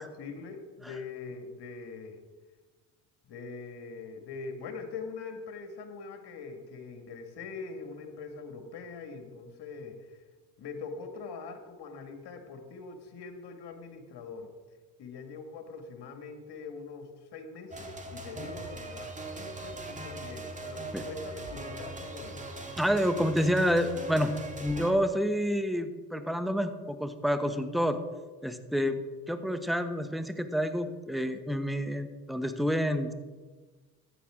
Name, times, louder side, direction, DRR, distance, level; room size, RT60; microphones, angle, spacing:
voice 1, 0.0-2.2 3.3-10.2 10.6-14.5 15.0-22.5, left 4 dB, 55° left, 5 dB, 2.2 m, -43 dB
sound 1, 17.7-24.9, right 2 dB, 15° right, 1.9 m, -40 dB
voice 2, 22.8-24.3 24.6-28.0 28.4-33.1, equal, ahead, 9 dB, 1.1 m, -28 dB
14.0 x 9.6 x 3.8 m, 1.3 s
hypercardioid pair, 65°, 46 cm